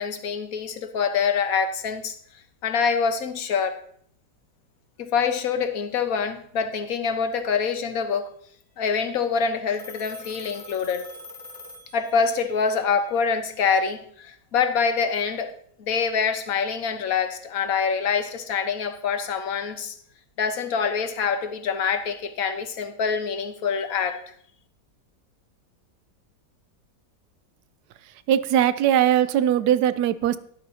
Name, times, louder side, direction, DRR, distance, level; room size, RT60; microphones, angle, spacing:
voice 1, 0.0-2.2 2.6-3.8 5.0-8.3 8.8-11.1 11.9-15.5 15.8-19.9 20.4-24.2, left 6 dB, 60° left, 8 dB, 1.4 m, -25 dB
Telephone, 9.7-12.5, left 2 dB, 15° left, 1.1 m, -43 dB
voice 2, 28.3-30.4, right 10 dB, 75° right, 15 dB, 1.1 m, -20 dB
12.5 x 11.5 x 2.8 m, 0.63 s
omnidirectional pair, 1.8 m